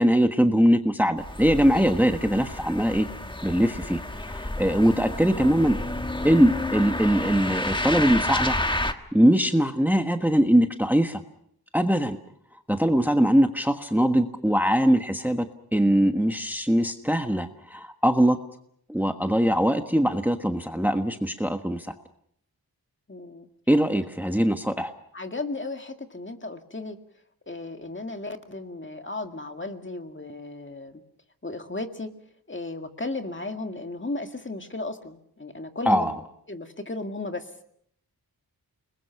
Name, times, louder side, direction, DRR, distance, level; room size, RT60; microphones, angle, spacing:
voice 1, 0.0-3.1 3.4-5.8 6.2-11.2 11.7-12.2 12.7-15.4 15.7-18.4 18.9-21.9 23.7-24.9 35.9-36.1, equal, 5° right, 6 dB, 1.3 m, -22 dB
sound 1, 1.2-8.9, left 1 dB, 15° left, 1.4 m, -30 dB
voice 2, 23.1-23.5 25.1-27.0 27.5-31.0 31.4-32.1 32.5-36.0 36.5-37.5, left 2 dB, 30° left, 6 dB, 2.0 m, -35 dB
29.5 x 21.0 x 5.8 m, 0.70 s
wide cardioid pair, 90°, 37 cm